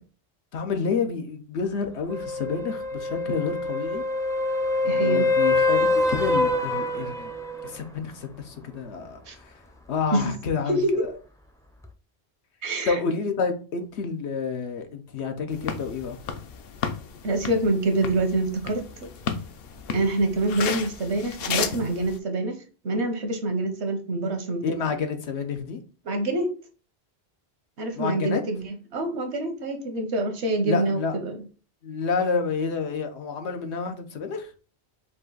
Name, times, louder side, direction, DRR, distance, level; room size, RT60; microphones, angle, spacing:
voice 1, 0.5-4.0 4.8-7.3 7.6-9.5 9.9-11.1 12.8-16.2 24.6-25.8 27.9-28.4 30.6-31.3 31.8-34.5, left 5 dB, 85° left, 1.1 m, -29 dB
sound 1, 2.1-7.7 11.8-11.9, left 2 dB, 5° left, 0.3 m, -25 dB
voice 2, 4.9-5.3 9.3-9.4 10.1-10.4 10.7-11.0 12.6-13.0 17.2-19.1 19.9-24.9 26.0-26.5 27.8-31.4, right 2 dB, 85° right, 1.2 m, -26 dB
sound 2, 15.5-22.2, left 6 dB, 65° left, 0.8 m, -33 dB
5.3 x 2.5 x 3.9 m
omnidirectional pair, 1.1 m